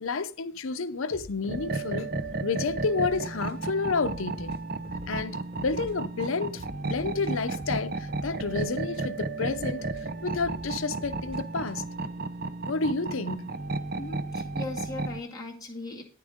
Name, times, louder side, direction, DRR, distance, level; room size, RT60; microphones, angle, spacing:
voice 1, 0.0-2.1 2.4-4.5 5.1-9.8 10.2-11.9 12.7-13.5, left 4 dB, 85° left, 0.7 m, -30 dB
sound 1, 1.1-3.2 3.5-3.6 4.0-5.9 6.2-9.1 9.4-12.0, left 1 dB, 30° right, 3.1 m, -46 dB
sound 2, 1.5-15.2, right 3 dB, 45° right, 0.7 m, -33 dB
voice 2, 14.0-16.0, left 2 dB, 20° left, 2.3 m, -38 dB
10.0 x 9.9 x 3.6 m
head